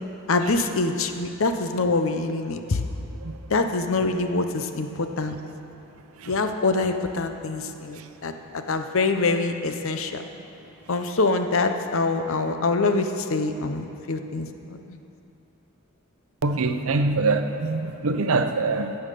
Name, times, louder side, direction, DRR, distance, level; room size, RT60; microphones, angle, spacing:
voice 1, 0.3-2.8 3.5-5.4 6.3-10.3 10.9-15.0, left 3 dB, 65° left, 7 dB, 0.7 m, -25 dB
voice 2, 16.4-19.0, right 3 dB, 75° right, 8 dB, 0.7 m, -24 dB
15.5 x 5.7 x 6.6 m, 2.8 s
head